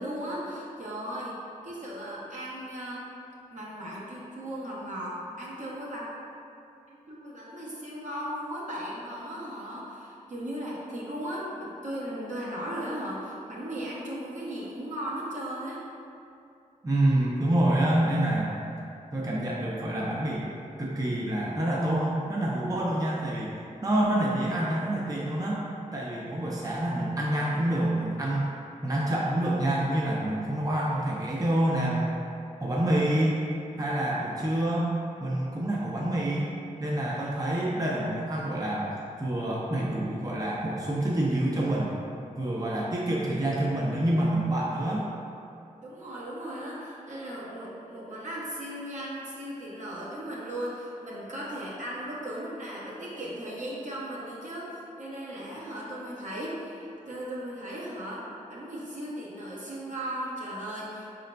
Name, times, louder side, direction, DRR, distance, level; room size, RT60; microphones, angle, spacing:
voice 1, 0.0-1.4 1.6-3.1 3.5-6.1 6.9-15.9 45.8-61.1, equal, 65° right, -6 dB, 1.0 m, -37 dB
voice 2, 16.8-18.6 19.1-20.5 20.8-23.5 23.8-28.5 28.8-32.1 32.6-33.4 33.8-34.9 35.2-38.9 39.2-42.0 42.4-45.1, right 1 dB, 25° right, -5 dB, 0.6 m, -27 dB
4.9 x 3.7 x 2.2 m, 2.6 s
cardioid pair, 50°, 14 cm